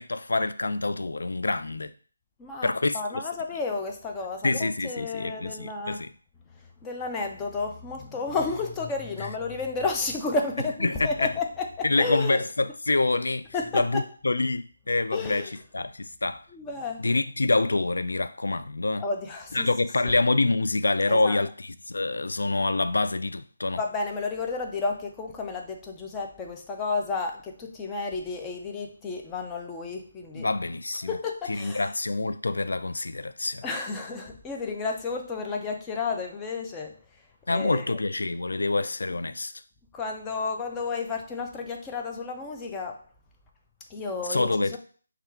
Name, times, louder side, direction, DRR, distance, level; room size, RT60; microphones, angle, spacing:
voice 1, 0.0-1.9 2.6-3.2 4.4-6.1 10.8-11.3 11.8-13.5 13.7-16.4 17.0-19.0 19.5-23.8 30.3-31.2 31.5-33.6 37.5-39.5 44.3-44.8, left 2 dB, 90° left, 0.3 m, -26 dB
voice 2, 2.4-6.0 6.8-12.4 13.5-14.0 15.1-15.5 16.5-17.1 19.0-19.7 21.1-21.4 23.7-30.5 31.0-31.9 33.6-37.0 37.5-38.0 39.9-43.0 43.9-44.8, left 4 dB, 10° left, 0.4 m, -32 dB
3.5 x 2.3 x 4.4 m
hypercardioid pair, 170°, 0 cm